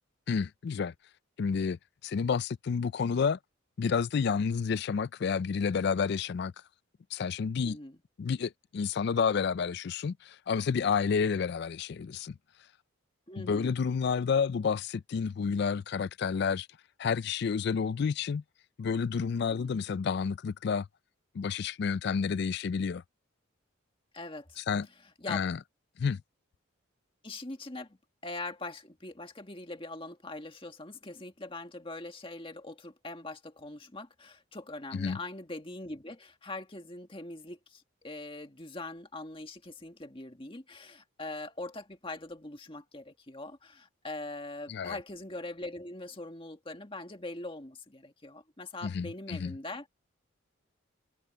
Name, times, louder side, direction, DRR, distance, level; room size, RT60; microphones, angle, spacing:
voice 1, 0.3-0.9 1.4-3.4 3.8-6.5 7.1-7.8 8.2-12.4 13.4-16.7 17.0-18.4 18.8-20.9 21.3-23.0 24.6-24.9 25.3-25.6 26.0-26.2 34.9-35.2 44.7-45.0 48.8-49.5, left 6 dB, 55° left, 0.3 m, -30 dB
voice 2, 7.6-8.0 13.3-13.7 19.5-19.8 24.1-24.6 25.2-25.4 27.2-28.0 28.2-49.9, left 2 dB, 25° left, 1.9 m, -42 dB
head